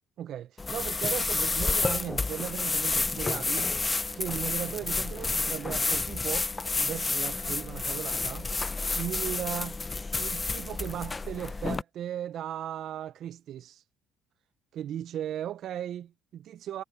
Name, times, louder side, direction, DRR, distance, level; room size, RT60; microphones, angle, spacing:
voice 1, 0.2-3.7 4.1-8.5 8.9-9.8 10.2-13.8 14.7-16.8, right 11 dB, 60° right, 0.6 m, -37 dB
sound 1, 0.6-11.8, left 3 dB, 25° left, 0.8 m, -30 dB
supercardioid pair, 65°, 0 cm